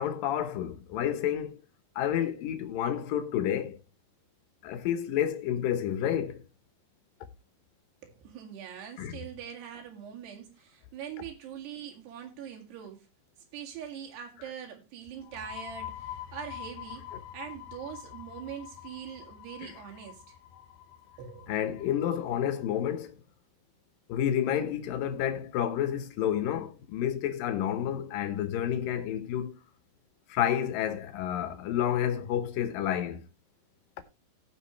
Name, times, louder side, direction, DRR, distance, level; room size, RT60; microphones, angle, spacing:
voice 1, 0.0-1.6 2.0-3.8 4.6-6.4 9.0-9.2 19.6-19.7 21.5-23.1 24.1-29.6 30.3-33.2, left 10 dB, 70° left, 2.5 m, -30 dB
voice 2, 8.0-13.1 13.5-17.1 17.3-20.4 21.2-21.6, right 8 dB, 80° right, 4.2 m, -43 dB
sound 1, 15.2-22.7, left 11 dB, 90° left, 3.3 m, -45 dB
18.0 x 6.3 x 3.1 m
omnidirectional pair, 4.7 m